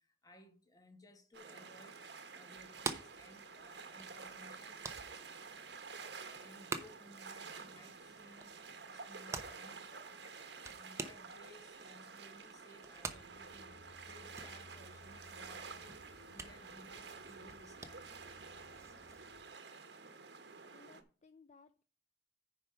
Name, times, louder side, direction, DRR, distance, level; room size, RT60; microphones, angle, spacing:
voice 1, 0.0-4.9 6.2-8.6 8.9-13.8 14.1-18.2, left 1 dB, 20° left, 1.6 m, -61 dB
sound 1, 1.3-21.0, right 5 dB, 65° right, 1.3 m, -51 dB
sound 2, 2.6-19.3, right 3 dB, 15° right, 0.9 m, -49 dB
sound 3, 13.2-19.4, left 2 dB, 60° left, 1.7 m, -62 dB
voice 2, 20.7-21.8, left 4 dB, 40° left, 0.5 m, -62 dB
9.8 x 5.1 x 5.5 m
head